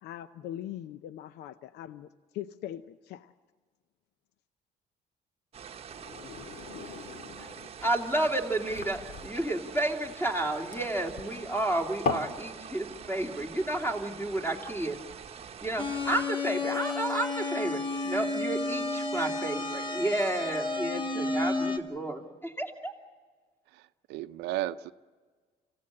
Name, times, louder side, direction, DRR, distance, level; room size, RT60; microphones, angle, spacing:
voice 1, 0.0-2.1 2.3-3.3, left 11 dB, 80° left, 0.7 m, -41 dB
sound 1, 5.5-16.3, right 7 dB, 35° right, 1.0 m, -45 dB
sound 2, 5.9-12.4, left 4 dB, 55° left, 1.8 m, -38 dB
voice 2, 7.8-15.0 15.3-22.9, right 1 dB, 10° left, 2.8 m, -31 dB
sound 3, 15.8-21.8, left 2 dB, 30° left, 2.1 m, -31 dB
voice 3, 23.7-24.9, right 14 dB, 90° right, 0.6 m, -34 dB
26.0 x 16.0 x 8.6 m
cardioid pair, 110°, 17 cm